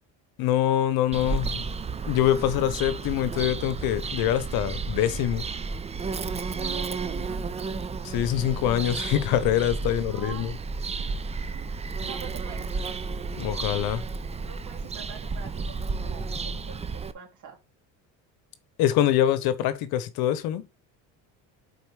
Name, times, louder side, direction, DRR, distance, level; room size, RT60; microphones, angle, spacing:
voice 1, 0.4-1.6 2.1-5.4 8.0-10.5 13.4-14.0 18.8-20.6, left 11 dB, 70° left, 1.0 m, -24 dB
Bird vocalization bird call bird song, 1.1-17.1, right 4 dB, 15° right, 0.5 m, -32 dB
voice 2, 6.1-7.8 9.8-10.6 11.5-11.7 12.0-12.7 14.4-17.6, right 7 dB, 50° right, 2.6 m, -44 dB
5.2 x 4.2 x 4.7 m
supercardioid pair, 100°, 38 cm